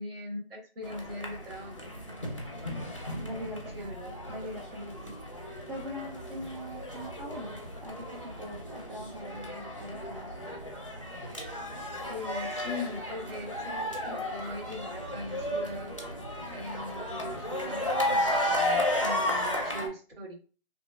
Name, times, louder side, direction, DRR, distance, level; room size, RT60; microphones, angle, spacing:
voice 1, 0.0-1.9 3.5-4.2 12.0-16.0 16.5-20.4, left 1 dB, 65° right, -1 dB, 1.3 m, -40 dB
sound 1, 0.8-19.9, left 1 dB, 30° left, 0.5 m, -34 dB
voice 2, 3.2-3.9 4.3-5.2 5.7-10.3, equal, 50° right, -5 dB, 0.8 m, -42 dB
2.9 x 2.0 x 2.2 m, 0.37 s
figure-of-eight pair, 180°, 31 cm